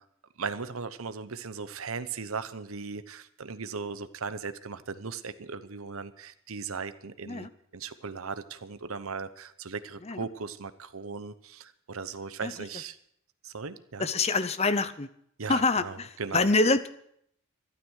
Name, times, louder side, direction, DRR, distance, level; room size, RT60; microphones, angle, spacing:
voice 1, 0.4-13.0 13.4-14.1 15.4-16.5, right 5 dB, 70° right, 13 dB, 0.9 m, -38 dB
voice 2, 14.0-15.1 15.5-16.9, left 3 dB, 30° left, 13 dB, 0.7 m, -26 dB
13.0 x 12.0 x 6.4 m, 0.71 s
head